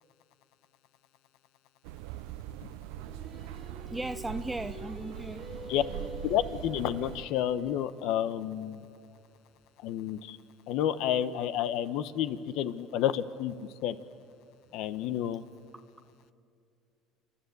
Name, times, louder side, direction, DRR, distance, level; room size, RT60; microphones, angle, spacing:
sound 1, 1.8-7.3, right 12 dB, 80° right, 0.6 m, -42 dB
Singing, 3.0-8.1, left 1 dB, 15° left, 4.6 m, -47 dB
voice 1, 3.9-5.4 6.0-6.2, right 2 dB, 10° right, 9 dB, 0.6 m, -37 dB
voice 2, 6.2-8.8 9.8-10.4 10.7-13.5 13.8-14.0 14.7-15.4, left 11 dB, 70° left, 14 dB, 0.9 m, -30 dB
28.5 x 11.5 x 8.0 m, 2.4 s
supercardioid pair, 100°, 0 cm